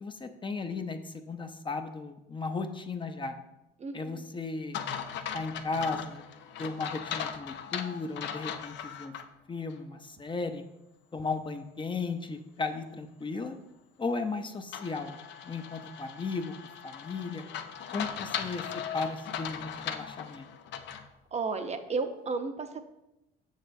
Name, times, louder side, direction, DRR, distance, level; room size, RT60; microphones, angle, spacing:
voice 1, 0.0-3.4 3.9-4.8 5.3-6.3 6.6-9.1 9.5-10.6 11.1-13.6 14.0-15.2 15.4-16.5 16.8-17.4 17.9-18.6 18.9-20.5, left 4 dB, 25° left, 6 dB, 0.6 m, -35 dB
voice 2, 3.8-4.2 21.3-22.9, right 4 dB, 35° right, 8 dB, 0.6 m, -33 dB
sound 1, 4.7-9.2 9.7-9.8 14.7-21.1, left 8 dB, 65° left, 0.6 m, -38 dB
6.5 x 6.4 x 2.6 m, 0.91 s
supercardioid pair, 85°, 20 cm